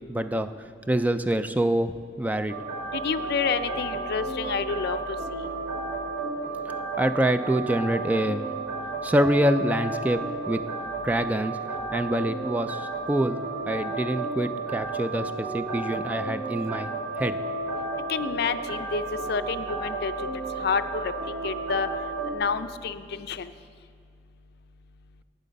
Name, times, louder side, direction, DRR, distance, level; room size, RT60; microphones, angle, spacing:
voice 1, 0.1-2.6 7.0-8.5 9.0-10.6 11.0-11.6 11.9-13.4 13.7-17.4, right 1 dB, 10° right, 10 dB, 0.3 m, -26 dB
sound 1, 2.5-22.4, right 3 dB, 65° right, 1.6 m, -32 dB
voice 2, 2.9-5.0 5.3-5.4 18.1-19.0 19.3-20.1 20.6-21.1 21.4-21.9 22.3-23.5, left 5 dB, 60° left, 10 dB, 0.4 m, -28 dB
10.5 x 9.1 x 5.2 m, 2.2 s
head